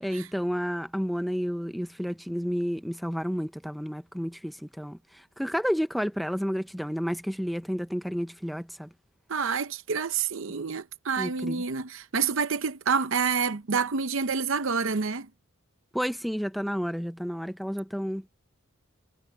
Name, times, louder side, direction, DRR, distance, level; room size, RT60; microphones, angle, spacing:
voice 1, 0.0-8.9 11.2-11.6 15.9-18.3, equal, ahead, 0.6 m, -31 dB
voice 2, 9.3-15.3, right 5 dB, 65° right, 0.7 m, -28 dB
head